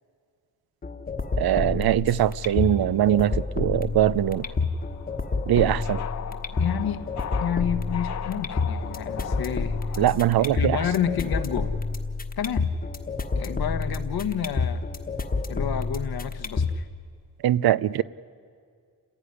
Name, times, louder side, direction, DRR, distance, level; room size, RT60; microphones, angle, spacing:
sound 1, 0.8-16.8, left 4 dB, 25° left, 1.1 m, -29 dB
voice 1, 1.4-4.5 5.5-6.0 10.0-10.8 17.4-18.0, right 12 dB, 85° right, 0.7 m, -22 dB
sound 2, 3.9-10.5, left 8 dB, 50° left, 0.8 m, -39 dB
voice 2, 6.6-7.1 7.4-9.8 10.4-11.7 12.4-12.7 13.3-14.9 15.5-16.9, left 8 dB, 85° left, 1.4 m, -29 dB
28.0 x 16.0 x 9.9 m
wide cardioid pair, 165°, 36 cm